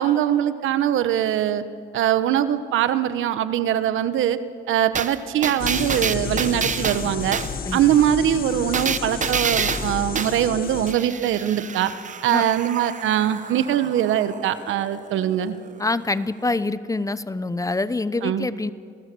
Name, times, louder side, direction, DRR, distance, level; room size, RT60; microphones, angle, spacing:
voice 1, 0.0-1.6 1.9-4.4 4.7-7.4 7.7-11.9 12.2-15.6 18.2-18.5, right 11 dB, 85° right, 12 dB, 1.1 m, -22 dB
sound 1, 4.9-7.6 8.7-10.4 10.9-16.1 16.4-16.5, right 6 dB, 40° right, 0.9 m, -29 dB
sound 2, 5.6-10.9, left 6 dB, 45° left, 1.2 m, -31 dB
voice 2, 15.8-18.7, left 3 dB, 15° left, 15 dB, 0.7 m, -25 dB
27.5 x 18.5 x 6.9 m, 2.3 s
cardioid pair, 90°, 20 cm